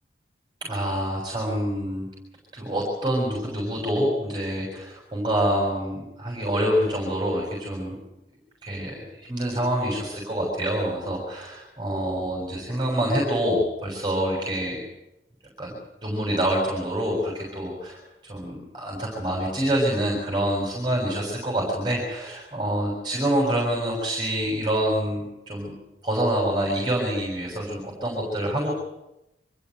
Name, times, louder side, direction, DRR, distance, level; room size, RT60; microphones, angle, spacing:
voice 1, 0.6-2.1 2.5-8.0 8.6-14.8 15.6-15.7 16.0-18.0 18.3-25.7 26.0-28.7, right 1 dB, 25° right, -2 dB, 6.9 m, -26 dB
25.5 x 15.0 x 9.2 m, 0.92 s
head